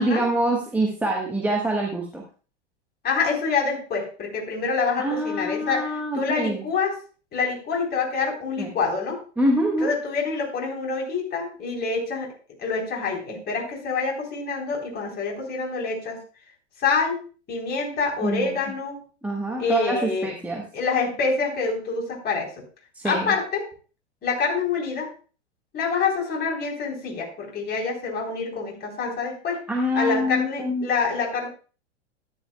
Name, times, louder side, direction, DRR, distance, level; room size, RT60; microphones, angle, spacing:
voice 1, 0.0-2.2 5.0-6.6 8.6-8.7 9.4-9.9 18.2-18.5 19.2-20.6 22.9-23.3 29.7-30.9, right 1 dB, 5° right, -1 dB, 1.2 m, -25 dB
voice 2, 3.0-6.9 7.3-9.2 9.8-12.3 12.6-16.2 16.8-17.2 17.5-19.0 19.6-20.3 20.7-22.6 23.0-23.6 24.2-25.1 25.7-29.6 29.9-31.5, left 4 dB, 25° left, -1 dB, 3.5 m, -26 dB
13.0 x 9.9 x 2.2 m, 0.37 s
figure-of-eight pair, 95°, 35 cm